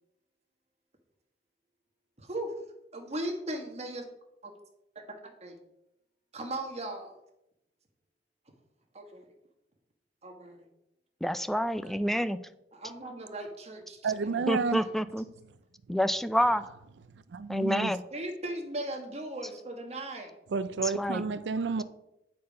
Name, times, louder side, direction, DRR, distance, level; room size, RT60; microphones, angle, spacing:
voice 1, 2.2-2.5 2.9-4.0 4.4-4.5 4.9-5.6 6.3-7.2 8.9-9.2 10.2-10.7 12.7-14.4 14.8-14.9 18.1-20.3, right 1 dB, 40° right, 1.4 m, -38 dB
voice 2, 11.2-12.4 14.5-15.3 15.9-16.6 17.5-18.0 20.8-21.3, equal, ahead, 0.3 m, -28 dB
voice 3, 14.0-14.8 17.3-17.9 20.5-21.8, right 4 dB, 80° right, 0.4 m, -30 dB
8.6 x 4.3 x 5.2 m
head